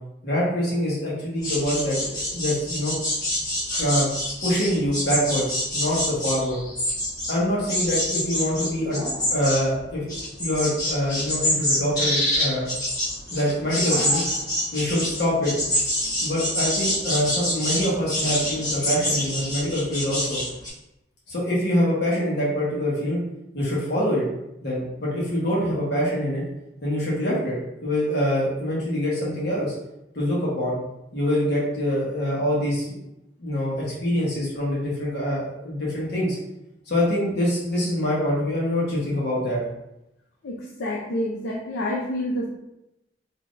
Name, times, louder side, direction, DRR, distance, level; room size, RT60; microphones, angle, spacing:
voice 1, 0.2-2.9 3.8-4.1 4.4-5.5 5.7-6.6 7.3-9.0 9.3-10.1 10.4-12.7 13.3-14.2 14.7-15.5 16.2-20.4 21.3-23.2 23.5-24.3 24.6-26.4 26.8-27.5 27.8-29.7 30.1-30.8 31.1-33.0 33.4-36.4 36.9-39.6, equal, 65° left, -6 dB, 1.3 m, -25 dB
sound 1, 1.4-7.3 7.6-20.7, left 1 dB, 20° left, 1.1 m, -26 dB
voice 2, 40.4-42.4, left 1 dB, 80° left, -3 dB, 0.5 m, -28 dB
3.7 x 2.9 x 2.5 m, 0.89 s
head